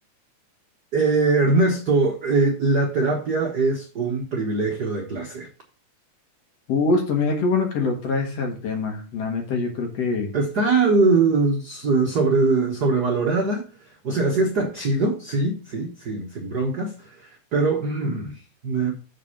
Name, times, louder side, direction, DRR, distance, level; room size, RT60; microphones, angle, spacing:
voice 1, 0.9-5.5 10.3-18.9, right 3 dB, 65° right, 0.9 m, -22 dB
voice 2, 6.7-10.3, left 3 dB, 55° left, 2.5 m, -24 dB
7.4 x 4.8 x 5.6 m
omnidirectional pair, 3.7 m